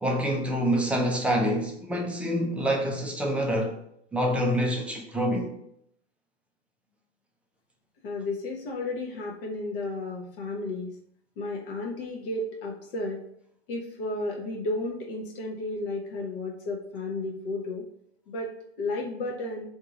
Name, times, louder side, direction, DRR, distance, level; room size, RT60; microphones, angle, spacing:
voice 1, 0.0-3.7 4.1-5.5, equal, 5° right, 0.4 m, -26 dB
voice 2, 8.0-11.0 11.4-13.2 13.7-17.8 18.3-19.7, left 2 dB, 55° left, 1.0 m, -33 dB
3.6 x 2.8 x 4.7 m
hypercardioid pair, 120°, 33 cm